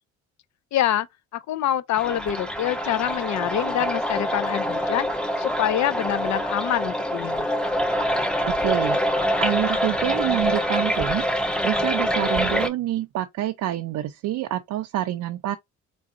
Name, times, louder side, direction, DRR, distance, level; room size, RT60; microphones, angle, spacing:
voice 1, 0.7-1.1 1.3-7.5, left 11 dB, 65° left, 0.6 m, -26 dB
sound 1, 2.0-12.7, equal, 5° left, 0.7 m, -25 dB
voice 2, 8.5-9.0 9.4-11.3 11.6-15.6, right 14 dB, 80° right, 0.6 m, -27 dB
3.9 x 3.4 x 2.5 m
cardioid pair, 90°, 30 cm